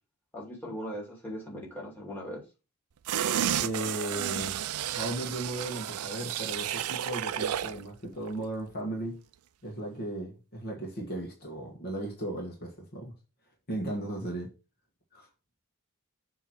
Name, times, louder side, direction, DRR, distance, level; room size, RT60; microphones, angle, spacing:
voice 1, 0.3-2.4, equal, 10° left, 2.7 m, -39 dB
sound 1, 3.1-7.8 8.2-8.3, right 10 dB, 85° right, 0.4 m, -32 dB
voice 2, 3.6-4.6 4.9-9.2 9.6-13.1 13.7-14.5 15.1-15.3, right 1 dB, 45° left, 1.5 m, -36 dB
7.1 x 3.0 x 5.7 m
head